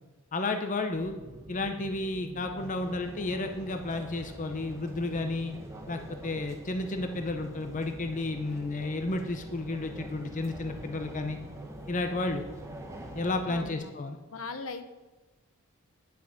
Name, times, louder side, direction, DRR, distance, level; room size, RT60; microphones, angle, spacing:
voice 1, 0.3-1.1 1.5-5.5 5.9-11.4 11.9-12.5 13.1-14.2, left 2 dB, 35° left, 6 dB, 0.7 m, -32 dB
sound 1, 0.9-13.8, right 1 dB, 35° right, 1.7 m, -47 dB
sound 2, 2.6-13.4, right 1 dB, 15° right, 1.3 m, -48 dB
voice 2, 13.5-13.9 14.3-14.9, left 4 dB, 70° left, 9 dB, 0.8 m, -39 dB
10.0 x 5.9 x 7.6 m, 1.2 s
head